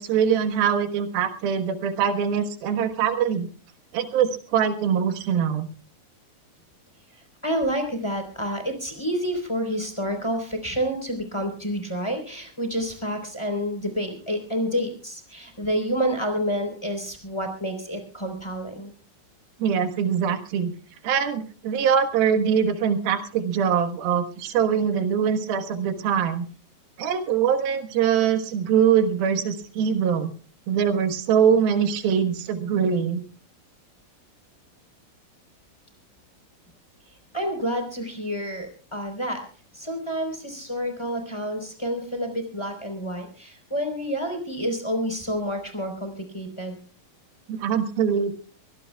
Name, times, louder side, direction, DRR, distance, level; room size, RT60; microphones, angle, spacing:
voice 1, 0.0-3.5 3.9-5.7 19.6-20.7 21.0-26.5 27.0-30.3 30.7-33.2 47.5-48.3, right 7 dB, 85° right, 7 dB, 3.3 m, -23 dB
voice 2, 7.1-18.9 37.3-39.4 39.7-46.8, equal, 10° left, 5 dB, 3.6 m, -29 dB
24.0 x 18.0 x 2.3 m, 0.37 s
omnidirectional pair, 4.2 m